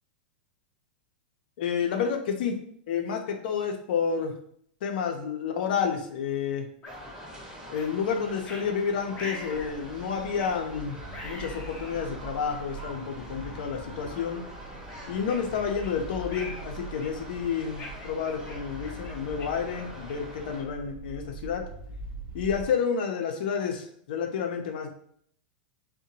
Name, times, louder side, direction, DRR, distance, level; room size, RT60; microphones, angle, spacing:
voice 1, 1.6-2.5 2.9-4.3 4.8-6.7 7.7-14.4 15.1-21.6 22.3-24.9, left 6 dB, 70° left, 3 dB, 0.5 m, -30 dB
sound 1, 6.8-7.0 7.7-7.9 8.4-8.7 9.1-9.8 10.4-10.6 11.1-12.0 12.7-12.8 13.5-13.8 14.2-14.3 14.9-15.9 16.3-16.7 17.0-17.3 17.8-20.3, left 2 dB, 30° left, 0.6 m, -43 dB
sound 2, 6.9-20.6, equal, 15° right, 0.8 m, -45 dB
sound 3, 9.5-22.7, right 3 dB, 50° right, 0.5 m, -43 dB
2.7 x 2.1 x 2.7 m, 0.64 s
hypercardioid pair, 115°, 5 cm